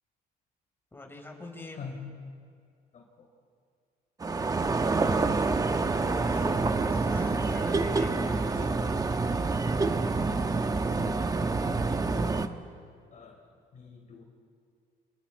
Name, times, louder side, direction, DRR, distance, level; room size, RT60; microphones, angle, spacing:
voice 1, 0.9-1.9 6.0-8.8, left 2 dB, 15° left, 2 dB, 4.7 m, -43 dB
voice 2, 1.7-2.0 2.9-3.3 10.7-12.6 13.1-14.2, left 5 dB, 45° left, 2 dB, 4.2 m, -47 dB
sound 1, 4.2-12.5, right 3 dB, 20° right, 1.1 m, -27 dB
29.0 x 26.5 x 4.6 m, 2.2 s
cardioid pair, 110°, 17 cm